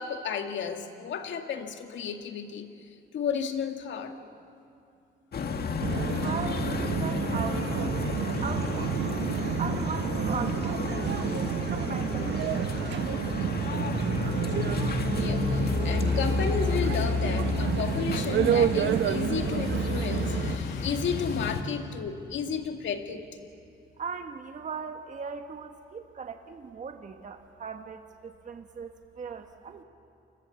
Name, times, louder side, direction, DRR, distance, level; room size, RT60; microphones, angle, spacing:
voice 1, 0.0-4.2 15.1-23.2, left 7 dB, 70° left, 5 dB, 2.1 m, -33 dB
sound 1, 5.3-21.6, left 4 dB, 50° left, 1.8 m, -31 dB
sound 2, 5.8-20.6, right 9 dB, 65° right, 1.2 m, -30 dB
voice 2, 6.2-7.9 8.4-8.9 9.6-12.7 24.0-29.8, right 6 dB, 40° right, 6 dB, 1.3 m, -39 dB
28.0 x 22.0 x 7.1 m, 2.5 s
cardioid pair, 90°, 20 cm